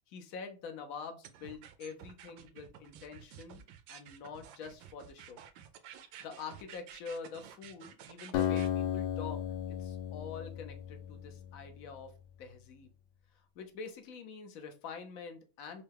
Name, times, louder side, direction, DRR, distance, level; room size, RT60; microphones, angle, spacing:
voice 1, 0.1-5.4 5.9-9.4 9.8-12.1 12.4-12.9 13.3-15.8, left 5 dB, 65° left, 5 dB, 0.8 m, -46 dB
sound 1, 1.2-8.7, right 10 dB, 75° right, 1.2 m, -52 dB
Acoustic guitar, 8.3-11.9, left 10 dB, 80° left, 1.4 m, -35 dB
5.5 x 2.2 x 3.4 m, 0.34 s
omnidirectional pair, 2.3 m